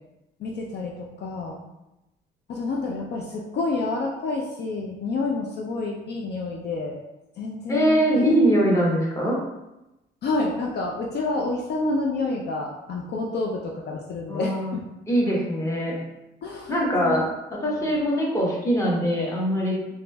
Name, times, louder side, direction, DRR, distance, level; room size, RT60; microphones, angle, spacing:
voice 1, 0.4-1.6 2.5-7.0 7.4-8.4 10.2-14.8 16.4-17.3 17.7-17.9, left 3 dB, 55° left, -1 dB, 0.4 m, -29 dB
voice 2, 7.7-9.4 14.3-14.7 15.1-15.9 16.7-17.2 17.5-19.7, equal, 15° left, -4 dB, 0.9 m, -22 dB
2.9 x 2.6 x 2.2 m, 0.94 s
cardioid pair, 90°, 20 cm